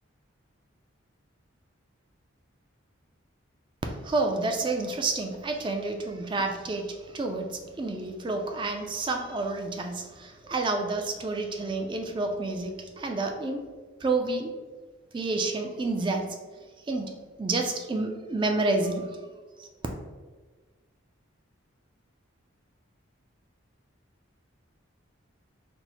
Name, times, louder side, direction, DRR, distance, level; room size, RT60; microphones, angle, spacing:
voice 1, 4.0-13.6 14.0-14.5 15.1-16.3 16.9-17.1 17.4-19.1 19.6-19.7, right 3 dB, 25° right, 3 dB, 0.3 m, -29 dB
4.4 x 2.0 x 4.0 m, 1.4 s
head